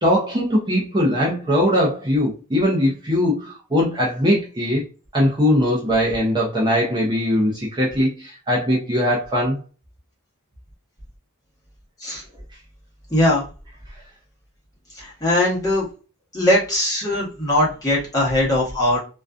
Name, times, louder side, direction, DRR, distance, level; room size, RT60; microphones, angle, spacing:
voice 1, 0.0-4.8 5.1-9.6, equal, 20° right, -4 dB, 0.5 m, -20 dB
voice 2, 13.1-13.4 15.0-15.9 16.3-19.0, left 1 dB, 15° left, -5 dB, 1.0 m, -20 dB
2.4 x 2.2 x 2.3 m, 0.34 s
head